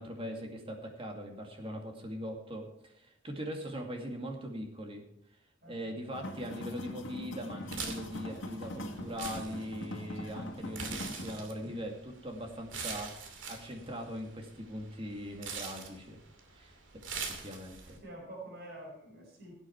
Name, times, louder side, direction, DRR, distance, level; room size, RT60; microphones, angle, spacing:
voice 1, 0.0-5.0 5.6-16.2 16.5-16.8 17.2-18.0, equal, 30° right, 2 dB, 2.3 m, -41 dB
sound 1, 6.1-11.3, left 1 dB, 85° left, 1.9 m, -42 dB
sound 2, 7.6-18.0, right 5 dB, 85° right, 2.5 m, -44 dB
voice 2, 17.8-19.5, right 1 dB, 55° right, -3 dB, 5.4 m, -47 dB
17.0 x 8.9 x 4.6 m, 0.74 s
head